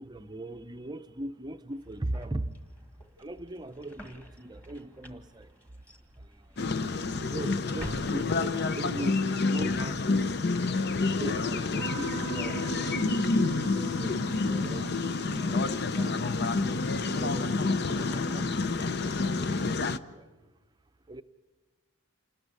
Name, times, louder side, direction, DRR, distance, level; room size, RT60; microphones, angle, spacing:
voice 1, 0.0-2.5 3.2-5.5 6.8-10.1 11.2-12.7 13.4-15.0 15.3-16.4 16.9-18.5 18.7-19.8 20.1-20.3 21.1-21.2, right 1 dB, 20° right, 0.7 m, -40 dB
sound 1, 1.7-9.2, equal, 5° left, 1.7 m, -49 dB
sound 2, 6.6-20.0, left 3 dB, 50° left, 0.6 m, -28 dB
Piano, 11.8-18.0, right 2 dB, 75° right, 0.7 m, -41 dB
28.5 x 13.5 x 9.7 m
head